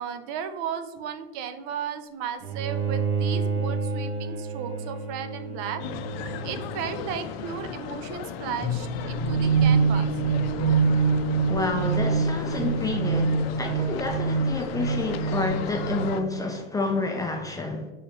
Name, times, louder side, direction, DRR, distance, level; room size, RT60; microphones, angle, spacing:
voice 1, 0.0-5.8 6.4-10.1, right 8 dB, 50° right, 9 dB, 0.5 m, -35 dB
Bowed string instrument, 2.4-7.6, right 5 dB, 70° right, 0.9 m, -31 dB
sound 1, 5.8-16.2, left 7 dB, 75° left, 0.5 m, -36 dB
sound 2, 8.6-16.4, right 5 dB, 20° right, 0.9 m, -25 dB
voice 2, 11.5-17.9, left 3 dB, 10° left, 2 dB, 0.4 m, -29 dB
5.3 x 3.2 x 2.9 m, 1.2 s
supercardioid pair, 120°, 30 cm